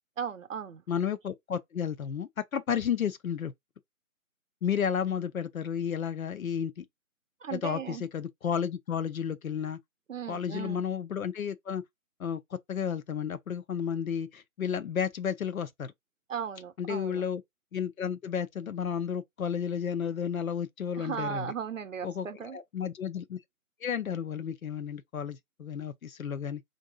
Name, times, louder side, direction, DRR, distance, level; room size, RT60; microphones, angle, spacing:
voice 1, 0.2-0.8 7.4-8.0 10.1-10.8 16.3-17.2 21.0-22.6, right 7 dB, 65° right, 0.7 m, -36 dB
voice 2, 0.9-3.5 4.6-6.8 7.5-9.8 10.3-11.8 12.2-15.9 16.8-17.4 17.7-21.5 22.0-23.4 23.8-26.6, left 8 dB, 85° left, 0.7 m, -32 dB
3.9 x 2.6 x 2.4 m
hypercardioid pair, 170°, 41 cm